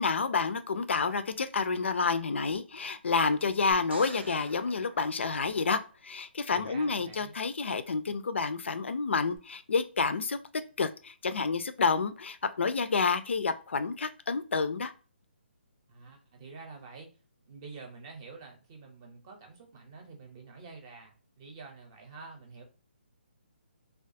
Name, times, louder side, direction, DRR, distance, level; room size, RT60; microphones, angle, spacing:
voice 1, 0.0-10.4 10.8-14.9, left 4 dB, 85° left, 0.3 m, -29 dB
sound 1, 3.7-6.0 9.3-9.4, right 4 dB, 70° right, 0.4 m, -49 dB
voice 2, 6.5-7.3 15.9-17.1 17.5-22.6, right 4 dB, 25° right, 0.6 m, -48 dB
2.3 x 2.3 x 2.5 m
hypercardioid pair, 160°, 6 cm